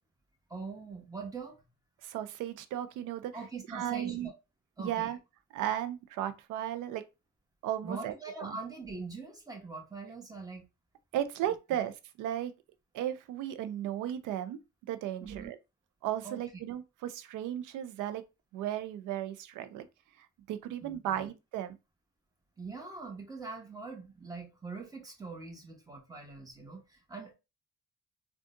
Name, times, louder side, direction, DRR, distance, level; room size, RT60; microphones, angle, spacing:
voice 1, 0.5-1.6 3.3-4.3 4.8-5.1 7.8-10.6 15.2-15.5 16.2-16.4 20.8-21.3 22.6-27.3, right 4 dB, 10° right, 1.2 m, -43 dB
voice 2, 2.0-3.3 3.7-4.3 4.8-5.2 5.5-7.0 7.6-8.1 8.4-8.6 11.1-12.5 12.9-14.6 14.9-15.6 16.0-18.2 18.5-19.9 20.2-21.8, right 11 dB, 85° right, 0.5 m, -35 dB
3.6 x 2.3 x 2.6 m
cardioid pair, 90°, 30 cm